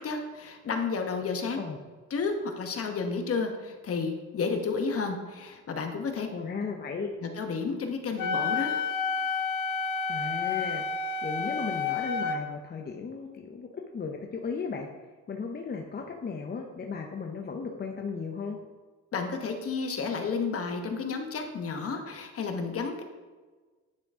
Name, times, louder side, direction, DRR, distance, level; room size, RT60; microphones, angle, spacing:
voice 1, 0.0-1.6 2.1-6.3 7.2-8.8 19.1-23.0, left 4 dB, 50° left, 4 dB, 1.0 m, -31 dB
voice 2, 6.3-7.1 10.1-10.8 11.2-14.9 15.3-18.6, left 5 dB, 35° left, 2 dB, 0.6 m, -35 dB
Wind instrument woodwind instrument, 8.2-12.4, left 5 dB, 80° left, 0.7 m, -30 dB
9.8 x 3.7 x 3.6 m, 1.4 s
cardioid pair, 90°, 30 cm